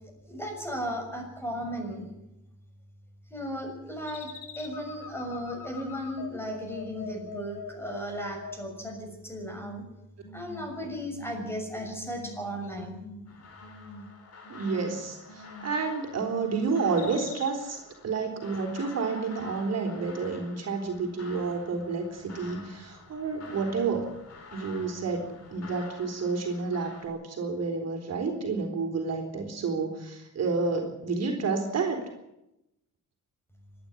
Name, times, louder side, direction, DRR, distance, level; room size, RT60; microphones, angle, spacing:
voice 1, 0.3-2.1 3.3-4.3 4.6-9.8 10.3-13.0, equal, 5° left, 2 dB, 6.6 m, -35 dB
sound 1, 4.1-9.0 9.4-9.8 10.2-10.7 11.1-11.5 11.9-12.4 12.8-13.3 13.6-14.1 14.4-14.9 15.3-15.8 16.1-16.6 17.0-17.5, left 5 dB, 85° left, 2.8 m, -43 dB
sound 2, 13.3-27.1, left 4 dB, 50° left, 4.9 m, -49 dB
voice 2, 14.5-24.1 24.5-32.1, right 4 dB, 55° right, 2 dB, 3.9 m, -30 dB
26.0 x 10.5 x 9.8 m, 0.89 s
cardioid pair, 130°, 32 cm